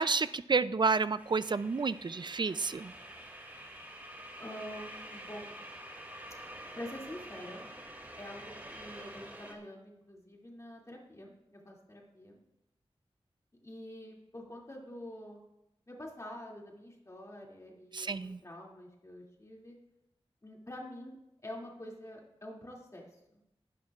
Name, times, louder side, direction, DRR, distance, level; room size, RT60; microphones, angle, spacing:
voice 1, 0.0-2.9 17.9-18.4, right 4 dB, 45° right, 15 dB, 0.4 m, -30 dB
sound 1, 1.2-9.5, right 1 dB, 20° right, 2.3 m, -47 dB
voice 2, 4.4-5.6 6.8-7.7 8.2-12.4 13.6-15.4 15.9-19.7 20.4-21.2 21.4-23.1 23.3-23.4, left 1 dB, 30° left, -2 dB, 2.5 m, -46 dB
19.5 x 11.5 x 2.4 m, 0.85 s
wide cardioid pair, 85°, 10 cm